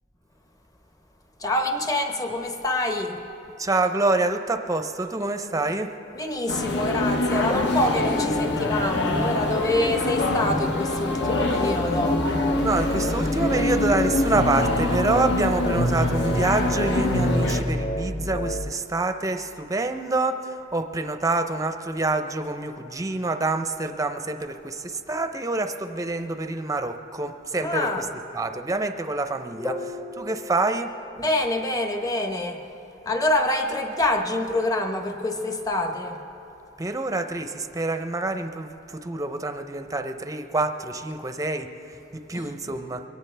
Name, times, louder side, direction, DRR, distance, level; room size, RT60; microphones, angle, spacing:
voice 1, 1.4-3.2 6.1-12.2 27.6-28.1 29.5-32.7 33.0-36.3 42.3-42.8, left 1 dB, 20° left, 5 dB, 1.0 m, -26 dB
voice 2, 3.6-5.9 12.6-30.9 36.8-43.0, right 2 dB, 15° right, 7 dB, 0.6 m, -27 dB
sound 1, 6.5-17.6, left 2 dB, 60° left, 1.1 m, -25 dB
sound 2, 11.2-18.7, equal, 35° left, 0.5 m, -30 dB
22.5 x 17.5 x 3.4 m, 2.9 s
head